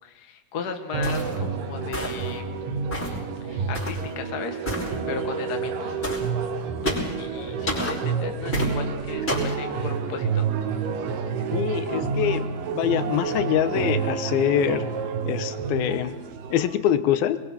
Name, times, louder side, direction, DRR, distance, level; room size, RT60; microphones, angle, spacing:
voice 1, 0.0-2.5 3.4-4.7 5.1-6.0 6.5-10.5, left 5 dB, 60° left, 5 dB, 1.0 m, -36 dB
sound 1, 0.9-16.7, right 5 dB, 70° right, 2.9 m, -29 dB
sound 2, 1.0-1.3 1.9-2.3 2.9-3.2 3.7-4.0 4.6-4.9 6.0-6.3 6.8-7.1 7.7-8.0 8.5-8.7 9.3-9.5, equal, 15° left, 5.2 m, -29 dB
voice 2, 11.5-14.9 15.3-16.2 16.5-17.4, left 10 dB, 80° left, 11 dB, 2.7 m, -24 dB
22.5 x 22.5 x 5.7 m, 1.2 s
omnidirectional pair, 4.4 m